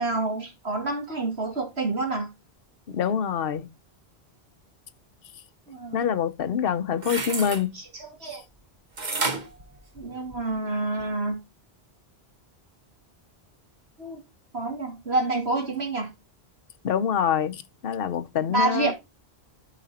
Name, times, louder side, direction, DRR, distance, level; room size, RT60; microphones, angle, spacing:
voice 1, 0.0-2.3 5.7-6.1 7.7-8.4 10.0-11.4 14.0-14.2 14.5-16.1 18.5-18.9, right 2 dB, 75° right, 2.8 m, -28 dB
voice 2, 2.9-3.7 5.9-7.7 16.8-18.9, left 8 dB, 65° left, 0.9 m, -26 dB
sound 1, 6.7-7.6 9.0-10.5 11.0-11.1, right 3 dB, 45° right, 1.4 m, -31 dB
11.5 x 5.0 x 4.2 m
omnidirectional pair, 1.1 m